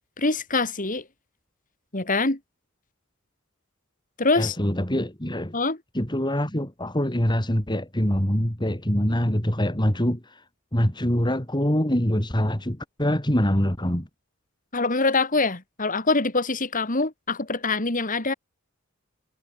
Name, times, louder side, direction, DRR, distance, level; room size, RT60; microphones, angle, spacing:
voice 1, 0.2-1.0 1.9-2.4 4.2-4.6 5.5-5.8 14.7-18.3, left 3 dB, 40° left, 2.9 m, -24 dB
voice 2, 4.4-5.5 5.9-10.4 10.7-14.1, equal, 20° left, 3.4 m, -24 dB
head